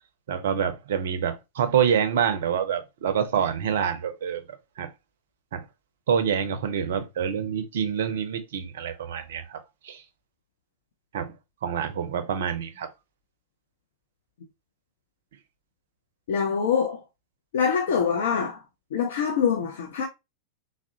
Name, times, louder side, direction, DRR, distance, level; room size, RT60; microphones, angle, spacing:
voice 1, 0.3-4.4 4.8-4.9 5.5-5.6 6.1-10.0 11.1-11.3 11.6-12.9, right 8 dB, 60° right, 0.4 m, -26 dB
voice 2, 16.3-17.0 17.5-18.6 18.9-20.1, left 6 dB, 60° left, 0.4 m, -24 dB
3.5 x 2.0 x 2.6 m
figure-of-eight pair, 90°, 0 cm